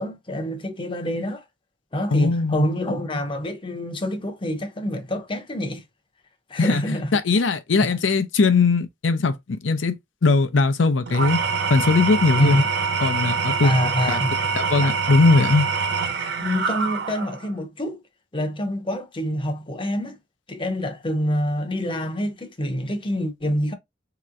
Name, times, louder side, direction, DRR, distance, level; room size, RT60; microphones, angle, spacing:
voice 1, 0.0-1.4 1.9-5.8 6.5-7.2 7.8-8.0 12.4-12.7 13.6-14.5 16.4-18.0 18.3-20.2 20.5-23.7, equal, 25° left, 0.7 m, -26 dB
voice 2, 2.1-2.6 6.6-11.4 11.7-12.6 13.0-13.7 14.1-14.2 14.6-15.7, left 3 dB, 80° left, 0.6 m, -20 dB
Engine / Tools, 11.1-17.5, right 5 dB, 60° right, 0.6 m, -25 dB
4.2 x 2.9 x 2.4 m
head